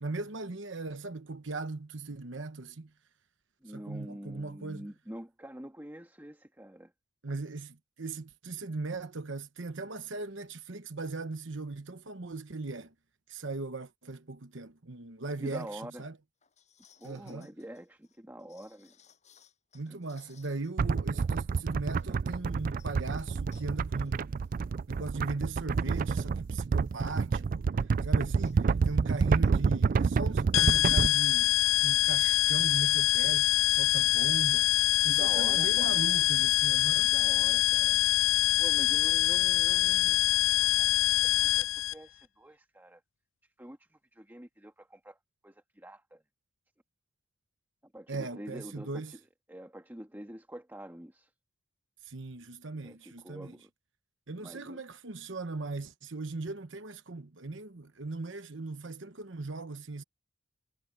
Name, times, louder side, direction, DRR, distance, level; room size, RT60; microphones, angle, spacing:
voice 1, 0.0-2.9 3.7-4.9 7.2-12.9 13.3-16.2 17.0-17.5 19.7-24.3 24.9-27.7 28.0-31.6 31.8-34.7 35.0-37.1 48.1-49.1 52.0-53.5 54.3-60.0, right 3 dB, 65° right, 1.1 m, -38 dB
voice 2, 3.6-6.9 15.4-16.0 17.0-19.0 19.9-20.0 35.1-36.1 37.0-38.0 38.3-40.5 40.8-43.0 43.6-45.2 45.4-46.2 47.8-49.2 49.5-51.3 52.8-53.7 54.4-54.8, right 1 dB, 10° right, 1.6 m, -46 dB
sound 1, 16.4-20.8 21.1-21.2 21.5-22.2 22.6-22.9 23.5-23.7 24.0-24.2 24.4-24.5 25.3-25.4 25.8-26.0 28.4-29.0 29.2-29.5 29.9-30.0, left 8 dB, 35° left, 7.4 m, -63 dB
sound 2, 20.8-31.1, right 5 dB, 45° right, 0.3 m, -28 dB
sound 3, 30.5-41.9, left 16 dB, 80° left, 0.4 m, -25 dB
head